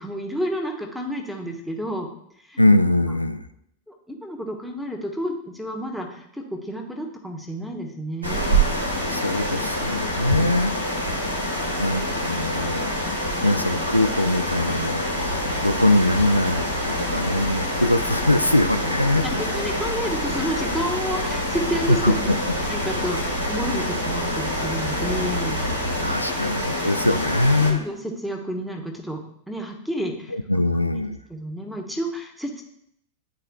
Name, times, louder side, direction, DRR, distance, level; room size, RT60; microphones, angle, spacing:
voice 1, 0.0-2.1 2.4-2.6 4.1-8.6 10.3-11.3 19.2-22.3 22.7-25.6 27.6-29.2 29.5-30.3 31.3-32.6, equal, ahead, 0 dB, 1.2 m, -30 dB
voice 2, 2.6-3.4 8.4-8.7 9.1-10.7 11.8-12.9 13.4-19.2 21.9-22.4 26.0-27.8 30.3-31.2, left 1 dB, 90° left, 9 dB, 0.3 m, -22 dB
sound 1, 8.2-27.7, equal, 85° right, 1.7 m, -26 dB
sound 2, 15.2-26.3, right 1 dB, 65° right, 0.5 m, -34 dB
10.5 x 4.2 x 2.3 m, 0.74 s
figure-of-eight pair, 90°, 0 cm